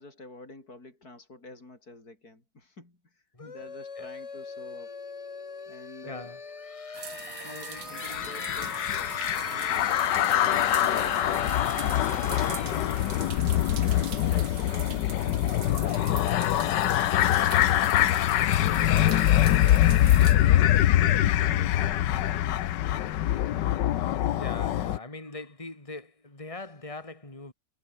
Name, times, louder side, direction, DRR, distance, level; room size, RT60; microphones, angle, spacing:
voice 1, 0.0-4.9 5.7-6.3 7.4-8.9 9.4-10.1 13.6-23.3, left 2 dB, 55° left, 7.0 m, -49 dB
sound 1, 3.4-14.9, left 4 dB, 30° left, 0.6 m, -41 dB
voice 2, 6.0-6.4 12.4-13.2 16.8-17.1 24.4-27.5, left 2 dB, 15° left, 3.6 m, -42 dB
sound 2, 6.9-20.4, right 10 dB, 80° right, 1.9 m, -42 dB
sound 3, 8.0-25.0, left 12 dB, 75° left, 1.4 m, -24 dB
omnidirectional pair, 2.0 m